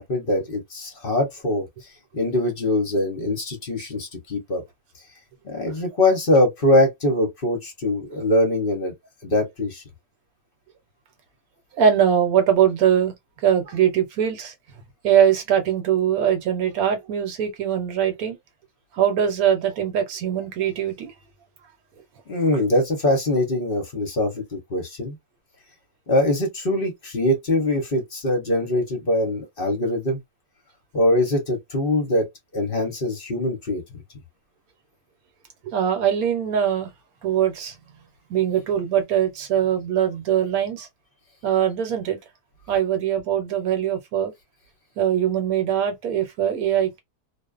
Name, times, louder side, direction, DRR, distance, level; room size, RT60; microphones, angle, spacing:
voice 1, 0.0-1.6 2.1-4.6 5.4-8.9 9.2-9.8 22.3-25.2 26.1-30.2 30.9-32.3 32.5-33.8, left 1 dB, 40° left, 0.9 m, -22 dB
voice 2, 11.8-13.1 13.4-14.5 15.0-18.4 18.9-21.1 35.6-36.9 37.2-37.7 38.3-40.9 41.4-42.2 42.7-44.3 45.0-47.0, right 9 dB, 65° right, 1.2 m, -22 dB
2.6 x 2.3 x 2.4 m
omnidirectional pair, 1.8 m